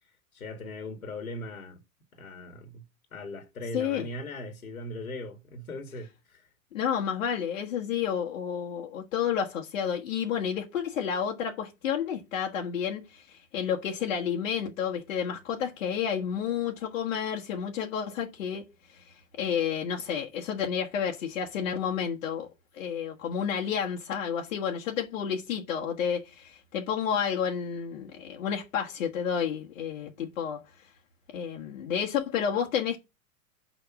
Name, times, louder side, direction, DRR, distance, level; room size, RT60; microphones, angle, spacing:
voice 1, 0.3-1.8 2.1-2.8 3.1-6.5, left 2 dB, 80° left, 1.8 m, -39 dB
voice 2, 3.7-4.1 6.7-18.6 19.4-22.5 22.7-30.6 31.3-33.0, left 8 dB, 65° left, 1.5 m, -30 dB
6.1 x 5.2 x 6.0 m
figure-of-eight pair, 95°, 42 cm